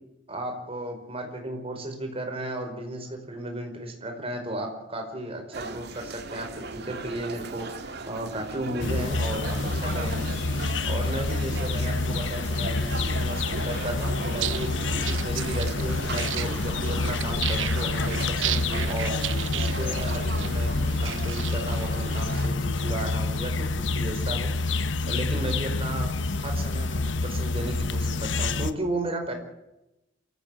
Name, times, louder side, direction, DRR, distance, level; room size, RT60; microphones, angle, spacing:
voice 1, 0.3-10.3 10.9-19.2 19.5-20.7 21.0-24.5 25.1-29.3, right 1 dB, 30° right, 4 dB, 4.8 m, -34 dB
sound 1, 5.5-22.5, right 3 dB, 60° right, 2.2 m, -38 dB
sound 2, 8.8-28.7, left 3 dB, 70° left, 1.2 m, -28 dB
sound 3, 14.3-21.9, right 11 dB, 85° right, 1.0 m, -34 dB
27.5 x 15.0 x 7.6 m, 0.94 s
head